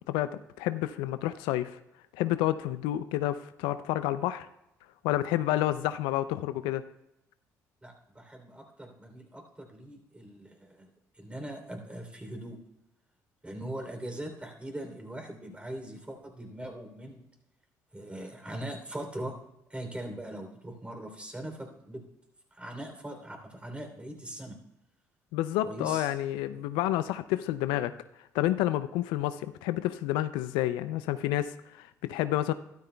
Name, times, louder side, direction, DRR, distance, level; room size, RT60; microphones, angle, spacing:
voice 1, 0.1-1.8 2.1-4.5 5.0-6.8 25.3-27.9 28.3-32.5, left 14 dB, 80° left, 13 dB, 0.4 m, -29 dB
voice 2, 7.8-10.9 11.2-12.6 13.4-17.2 17.9-19.3 19.7-22.0 22.5-24.6 25.6-26.1 26.5-26.7, right 1 dB, 15° right, 3 dB, 3.1 m, -41 dB
13.0 x 12.5 x 2.3 m, 0.86 s
hypercardioid pair, 60°, 8 cm